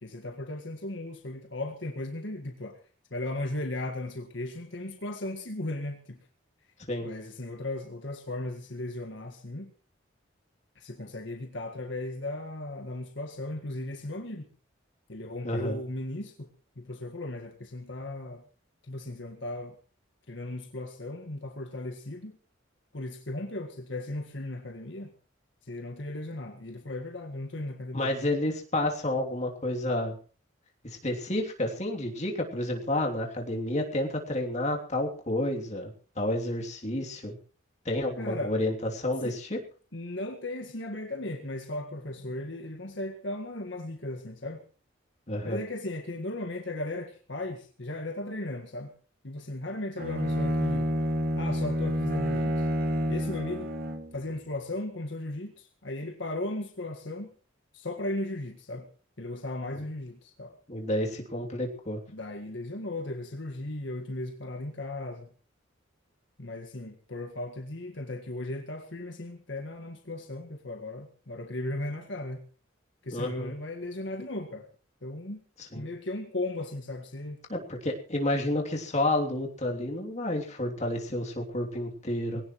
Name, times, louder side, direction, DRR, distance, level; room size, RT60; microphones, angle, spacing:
voice 1, 0.0-2.8 3.1-6.2 7.0-9.7 10.7-14.5 15.1-16.5 16.7-18.4 18.8-19.8 20.3-22.4 22.9-25.1 25.7-28.1 38.2-38.6 39.2-39.4 39.9-44.6 45.4-48.9 49.2-50.9 51.4-52.7 53.1-53.7 54.1-57.3 57.7-58.9 59.2-60.6 62.1-65.3 66.4-72.4 73.0-74.7 75.0-75.4 75.7-77.4 82.3-82.4, left 2 dB, 65° left, 4 dB, 1.8 m, -36 dB
voice 2, 15.4-15.8 27.9-30.1 30.8-37.4 37.8-39.6 45.3-45.6 60.7-62.0 73.1-73.5 75.6-75.9 77.5-82.4, left 1 dB, 35° left, 1 dB, 3.2 m, -30 dB
Bowed string instrument, 50.0-54.2, equal, 50° right, 2.3 m, -29 dB
22.0 x 17.5 x 3.2 m, 0.39 s
head